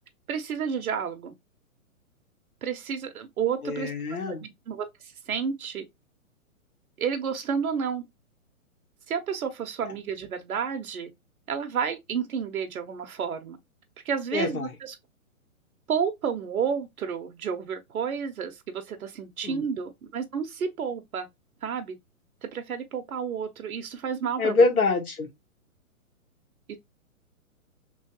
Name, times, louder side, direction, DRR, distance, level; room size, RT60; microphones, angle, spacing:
voice 1, 0.3-1.3 2.6-3.9 4.3-5.8 7.0-8.1 9.1-11.1 11.5-13.6 14.0-15.0 15.9-21.3 21.6-22.0 22.4-24.6 26.7-26.8, right 7 dB, 80° right, 0.8 m, -31 dB
voice 2, 3.6-4.4 14.3-14.7 19.4-19.6 24.4-25.3, left 3 dB, 90° left, 1.6 m, -24 dB
3.1 x 3.1 x 2.8 m
hypercardioid pair, 140°, 42 cm